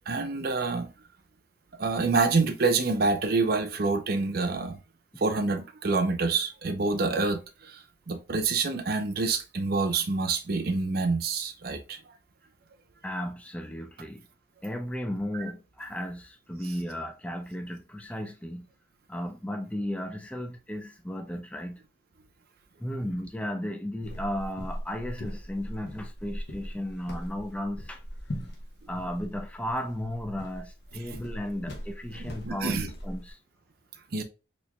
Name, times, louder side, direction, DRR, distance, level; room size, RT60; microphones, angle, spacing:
voice 1, 0.1-0.9 1.8-4.8 5.2-12.0 15.3-15.4 32.4-32.9 34.1-34.2, right 3 dB, 55° right, 0.6 m, -27 dB
voice 2, 13.0-14.2 14.6-18.7 19.1-21.8 22.8-28.0 28.9-33.4, left 1 dB, 5° left, 0.4 m, -35 dB
sound 1, 24.0-33.3, equal, 60° left, 1.0 m, -40 dB
4.3 x 3.0 x 2.2 m
head